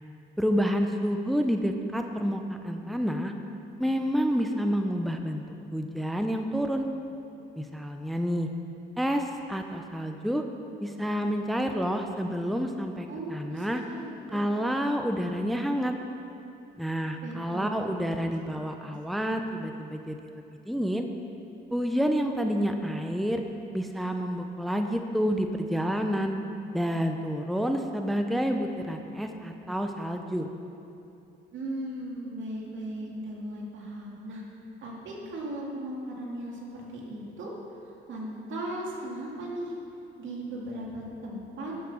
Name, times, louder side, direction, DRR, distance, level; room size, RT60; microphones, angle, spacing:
voice 1, 0.4-3.3 3.8-5.4 5.7-6.9 7.6-8.5 9.0-10.4 10.8-13.8 14.3-16.0 16.8-21.1 21.7-23.4 23.7-26.4 26.7-30.5, equal, ahead, 5 dB, 0.6 m, -29 dB
voice 2, 13.1-14.4 17.2-17.9 18.2-19.0 31.5-34.4 34.8-37.5 38.1-39.7 40.2-41.7, right 1 dB, 70° right, -3 dB, 2.4 m, -37 dB
11.5 x 5.9 x 6.9 m, 2.7 s
cardioid pair, 90°, 20 cm